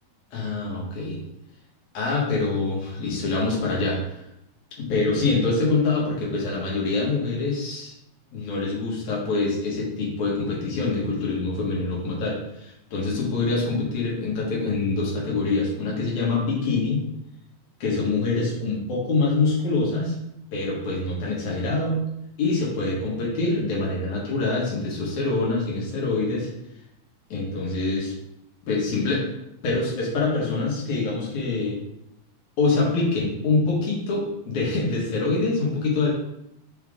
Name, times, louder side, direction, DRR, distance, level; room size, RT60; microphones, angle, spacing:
voice 1, 0.3-1.2 1.9-4.0 4.8-7.9 8.3-17.1 17.8-20.2 20.5-22.0 22.4-26.5 27.3-28.1 28.6-29.2 29.6-31.8 32.6-36.1, left 3 dB, 60° left, -4 dB, 2.7 m, -25 dB
6.3 x 4.5 x 3.6 m, 0.82 s
omnidirectional pair, 4.3 m